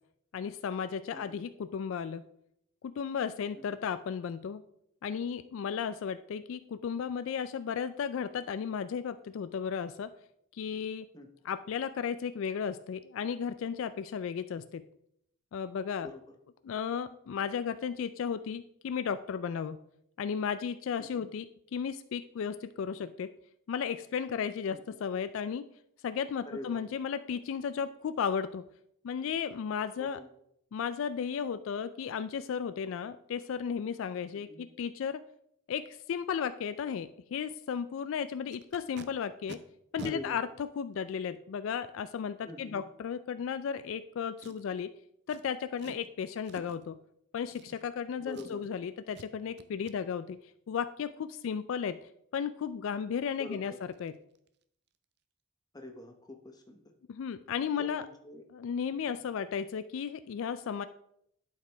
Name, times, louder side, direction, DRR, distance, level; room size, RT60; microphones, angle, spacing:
voice 1, 0.3-2.2 2.8-4.6 5.0-10.1 10.5-11.1 11.4-14.8 15.5-16.1 16.6-19.8 20.2-21.5 21.7-23.3 23.7-25.7 26.0-28.6 29.0-30.2 30.7-35.2 35.7-39.6 39.9-40.5 40.8-44.9 45.3-47.0 47.3-50.4 50.7-52.0 52.3-53.7 54.0-54.1 57.1-58.0 58.5-60.9, left 7 dB, 65° left, 12 dB, 0.3 m, -34 dB
voice 2, 16.0-16.3 21.0-21.3 24.7-24.8 26.4-26.8 30.0-30.3 34.3-34.6 40.0-40.4 42.4-42.8 48.2-48.6 53.4-53.8 55.7-56.8 57.8-58.5 59.1-59.2, left 1 dB, 20° left, 4 dB, 0.8 m, -45 dB
Packing tape duct tape, 38.5-39.1 39.5-39.6 40.0-40.2 40.9-41.0 44.4-44.8 45.3-45.4 45.8-46.1 46.5-46.8 47.5-48.0 48.3-48.8 49.1-49.3 49.6-50.0 53.0-53.1 53.4-53.6 53.9-54.1 54.4-54.6 54.9-55.0, right 4 dB, 50° right, 0.4 m, -48 dB
11.0 x 4.8 x 3.3 m, 0.73 s
head